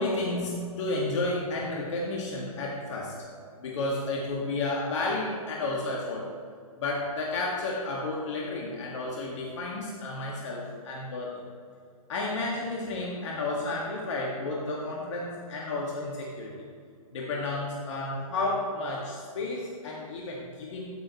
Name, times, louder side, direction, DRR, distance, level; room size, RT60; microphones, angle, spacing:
voice 1, 0.0-3.1 3.6-6.3 6.8-11.4 12.1-16.5 17.1-20.9, left 2 dB, 50° left, -3 dB, 1.8 m, -32 dB
14.0 x 9.1 x 3.0 m, 2.3 s
figure-of-eight pair, 130°, 19 cm